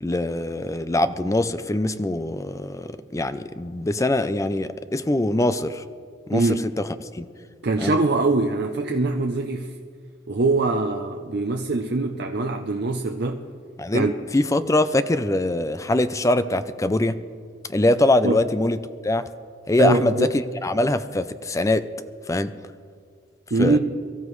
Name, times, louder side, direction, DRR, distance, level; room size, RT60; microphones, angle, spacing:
voice 1, 0.0-5.8 6.3-7.3 7.8-8.0 13.8-17.2 17.7-18.8 19.0-19.2 19.7-21.9 22.3-22.5 23.6-23.8, left 1 dB, 15° left, 12 dB, 0.5 m, -23 dB
voice 2, 6.3-6.7 7.6-9.7 10.3-13.4 13.9-14.1 18.2-18.4 19.8-20.3 23.5-23.8, right 3 dB, 60° right, 4 dB, 0.7 m, -23 dB
23.5 x 14.0 x 3.2 m, 2.1 s
head